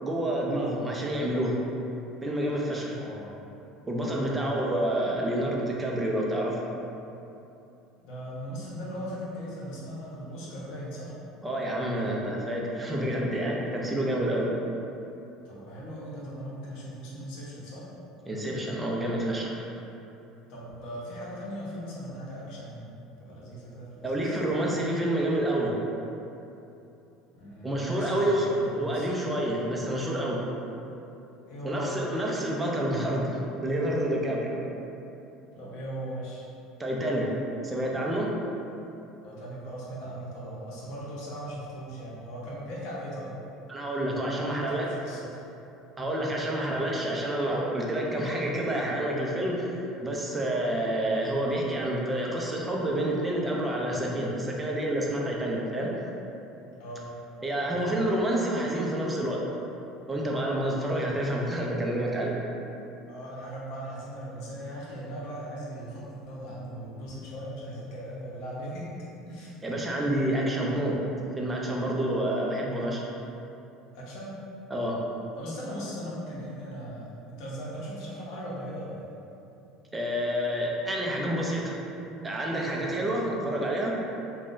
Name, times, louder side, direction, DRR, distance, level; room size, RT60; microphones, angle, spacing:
voice 1, 0.0-1.6 2.2-3.0 3.9-6.6 11.4-14.5 18.3-19.6 24.0-25.8 27.6-28.5 28.7-30.4 31.6-34.5 36.8-37.3 37.6-38.3 43.7-44.9 46.0-49.8 50.0-55.9 57.4-59.4 60.1-62.4 69.6-71.0 71.4-73.1 74.7-75.0 79.9-81.8 82.2-84.0, right 1 dB, 15° right, -2 dB, 0.5 m, -28 dB
voice 2, 2.9-3.4 4.2-4.7 8.0-11.1 15.4-17.8 20.5-24.4 27.3-29.1 31.4-32.0 35.5-36.5 39.2-43.4 44.3-45.4 50.7-50.9 56.8-57.1 57.6-57.8 63.1-68.9 69.3-69.5 73.9-74.3 75.4-79.1, equal, 70° left, -6 dB, 0.8 m, -39 dB
3.5 x 2.2 x 2.5 m, 2.9 s
supercardioid pair, 110°, 0 cm